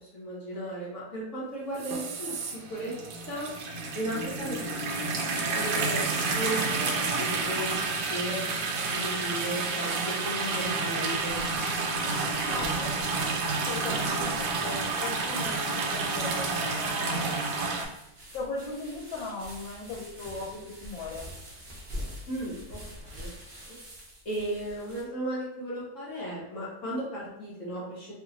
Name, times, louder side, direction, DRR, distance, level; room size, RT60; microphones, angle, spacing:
voice 1, 0.0-3.0 3.2-3.5 3.9-7.8 8.1-8.4 8.9-11.4 22.3-23.3 23.6-23.8 24.2-28.1, right 1 dB, 55° left, -6 dB, 0.9 m, -35 dB
sound 1, 1.7-17.9, right 3 dB, 70° right, 1.1 m, -30 dB
sound 2, 11.2-25.0, equal, 50° right, 0.6 m, -46 dB
voice 2, 12.4-17.3 18.3-21.3, left 3 dB, 85° left, -2 dB, 1.3 m, -38 dB
3.2 x 2.8 x 2.5 m, 0.93 s
omnidirectional pair, 2.0 m